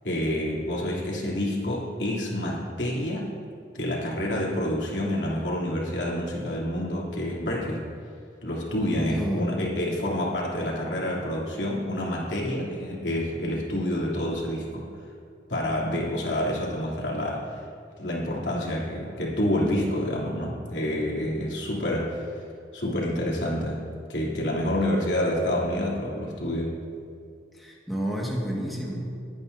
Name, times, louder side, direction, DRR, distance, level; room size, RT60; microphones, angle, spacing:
voice 1, 0.0-3.3 3.7-7.8 8.4-14.9 15.5-17.6 18.0-22.2 22.7-23.8 24.1-26.8, left 1 dB, 85° left, -4 dB, 3.0 m, -28 dB
voice 2, 9.1-9.5 27.5-29.0, equal, ahead, -4 dB, 1.7 m, -30 dB
21.0 x 9.6 x 2.7 m, 2.3 s
head